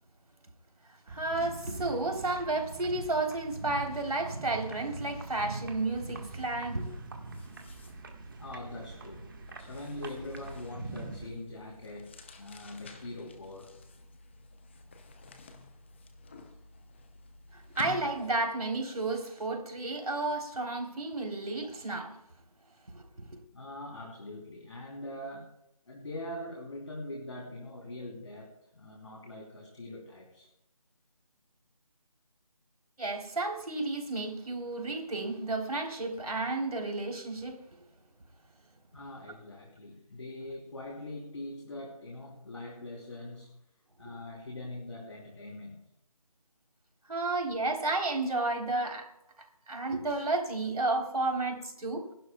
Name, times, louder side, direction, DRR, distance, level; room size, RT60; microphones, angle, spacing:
voice 1, 0.9-6.9 17.5-22.2 22.9-23.3 33.0-37.6 47.1-49.0 49.7-52.0, right 2 dB, 70° right, 2 dB, 3.5 m, -32 dB
sound 1, 1.1-11.3, right 3 dB, 35° right, 1.5 m, -43 dB
sound 2, 4.6-4.8 5.1-18.5, left 4 dB, 20° left, 0.8 m, -51 dB
voice 2, 8.4-9.3 9.6-13.7 23.5-25.5 25.8-30.5 38.9-43.5 44.0-45.8, left 1 dB, 50° left, -1 dB, 3.3 m, -42 dB
30.0 x 12.0 x 2.3 m, 0.83 s
figure-of-eight pair, 160°, 20 cm